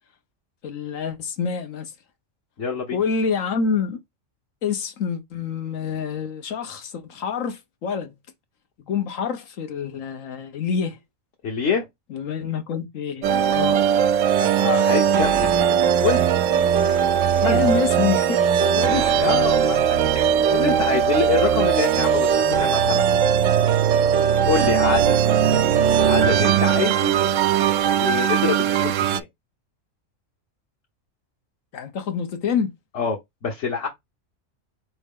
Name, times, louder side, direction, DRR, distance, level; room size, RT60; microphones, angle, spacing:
voice 1, 0.6-1.9 2.9-4.0 4.6-8.1 8.8-11.0 12.1-13.8 17.5-19.1 24.8-25.1 31.7-32.7, left 6 dB, 85° left, 1.3 m, -27 dB
voice 2, 2.6-3.0 11.4-11.8 14.4-15.6 16.0-16.3 17.4-17.7 19.2-20.0 20.5-23.0 24.5-25.2 25.9-27.1 27.9-29.3 32.9-33.2 33.4-33.9, left 6 dB, 65° left, 1.3 m, -25 dB
sound 1, 13.2-29.2, right 8 dB, 80° right, 0.9 m, -19 dB
4.1 x 3.5 x 3.6 m
omnidirectional pair, 1.3 m